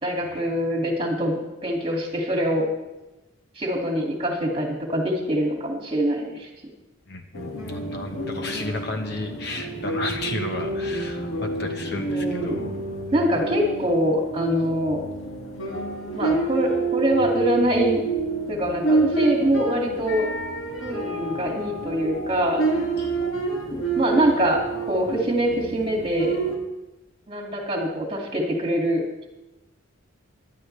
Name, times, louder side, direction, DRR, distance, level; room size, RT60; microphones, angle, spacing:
voice 1, 0.0-2.7 3.6-6.5 11.9-12.7 13.1-15.0 16.1-18.0 18.5-20.3 20.8-22.7 23.7-26.4 27.3-29.0, equal, 25° right, 0 dB, 2.4 m, -24 dB
voice 2, 7.1-12.7 23.0-23.4, left 2 dB, 55° left, 5 dB, 1.2 m, -33 dB
sound 1, 7.3-26.5, right 3 dB, 80° left, 2.2 m, -28 dB
18.5 x 12.0 x 3.4 m, 1.0 s
head